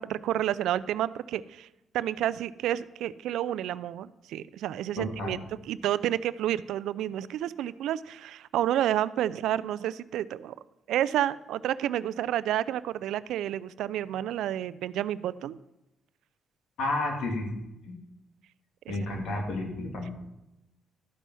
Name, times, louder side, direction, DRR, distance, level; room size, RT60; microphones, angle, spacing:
voice 1, 0.0-1.7 1.9-5.4 5.7-10.5 10.9-15.6 18.9-19.0, right 12 dB, 85° right, 17 dB, 0.3 m, -30 dB
voice 2, 5.0-5.4 16.8-17.4 17.9-18.0 18.9-20.1, left 2 dB, 75° left, 1 dB, 2.5 m, -31 dB
12.5 x 5.5 x 6.2 m, 0.93 s
cardioid pair, 90°, 0 cm